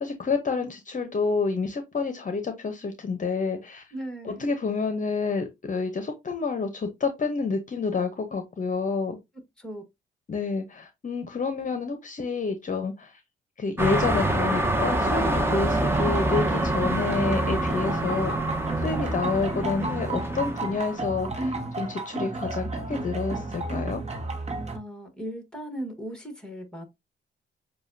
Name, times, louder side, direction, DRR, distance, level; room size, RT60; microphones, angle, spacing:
voice 1, 0.0-3.9 4.2-9.2 10.3-13.2 13.6-24.0, left 4 dB, 40° left, 0.8 m, -29 dB
voice 2, 3.9-4.5 9.6-9.8 24.7-26.8, right 1 dB, 5° left, 1.6 m, -37 dB
sound 1, 13.8-21.0, right 1 dB, 10° right, 0.9 m, -26 dB
sound 2, 15.6-24.8, right 2 dB, 30° right, 1.1 m, -32 dB
7.0 x 2.4 x 2.6 m
cardioid pair, 75°, 21 cm